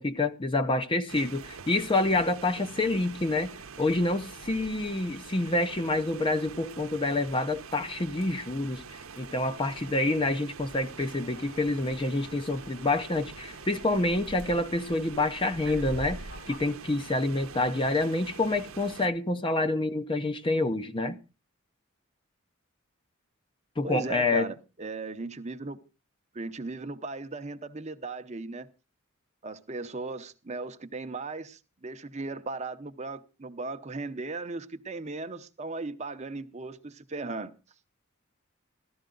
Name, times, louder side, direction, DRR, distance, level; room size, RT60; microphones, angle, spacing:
voice 1, 0.0-21.2 23.8-24.5, left 2 dB, 25° left, 0.7 m, -28 dB
sound 1, 1.1-19.1, right 4 dB, 70° right, 0.9 m, -44 dB
sound 2, 9.2-16.6, left 3 dB, 60° left, 2.9 m, -54 dB
voice 2, 23.8-25.8 26.3-28.7 29.4-37.5, right 3 dB, 30° right, 0.8 m, -37 dB
14.5 x 12.5 x 3.9 m
head